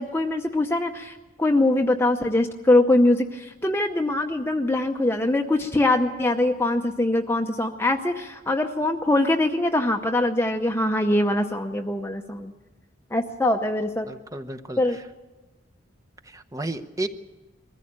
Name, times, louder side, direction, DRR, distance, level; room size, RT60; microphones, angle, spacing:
voice 1, 0.0-12.5 13.1-14.1 14.8-15.0, left 1 dB, 10° left, 4 dB, 0.8 m, -23 dB
voice 2, 14.1-15.0 16.2-17.1, right 2 dB, 15° right, 8 dB, 0.9 m, -33 dB
22.0 x 15.0 x 8.7 m, 1.2 s
head